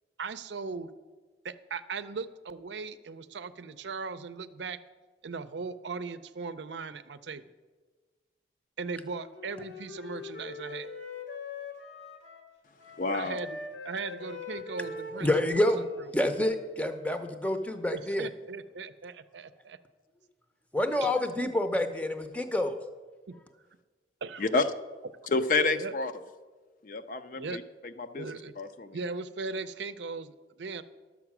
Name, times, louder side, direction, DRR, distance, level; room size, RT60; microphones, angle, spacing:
voice 1, 0.2-0.9 1.4-4.8 5.2-7.4 8.8-10.9 13.1-13.6 13.8-15.3 16.0-16.1 17.9-19.8 21.0-21.5 23.3-23.4 24.2-24.6 25.7-25.9 27.3-27.6 28.1-28.5 28.9-30.8, right 4 dB, 80° right, 12 dB, 0.5 m, -38 dB
Wind instrument woodwind instrument, 8.9-12.5 12.8-16.7, left 4 dB, 80° left, 1.6 m, -43 dB
voice 2, 13.0-13.4 24.4-24.7 25.3-26.1 26.8-27.6 28.0-28.3 28.6-29.0, left 3 dB, 45° left, 10 dB, 0.5 m, -29 dB
voice 3, 15.2-15.9 16.1-18.3 20.7-22.8, left 1 dB, 10° left, 7 dB, 0.6 m, -28 dB
12.0 x 7.2 x 6.0 m, 1.4 s
head